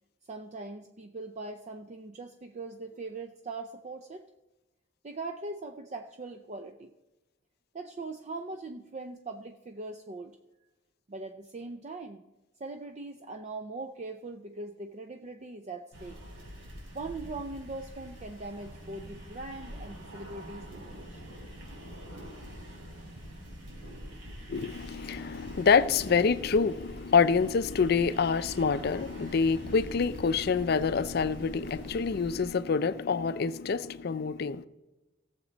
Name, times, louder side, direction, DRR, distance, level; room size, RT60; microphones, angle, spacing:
voice 1, 0.3-4.2 5.0-6.9 7.7-10.4 11.1-12.2 12.6-16.2 16.9-21.2, right 3 dB, 35° right, 0.5 m, -41 dB
sound 1, 15.9-32.4, equal, 70° right, 3.5 m, -45 dB
voice 2, 24.5-34.7, left 5 dB, 50° left, 0.4 m, -26 dB
17.0 x 7.3 x 4.0 m
head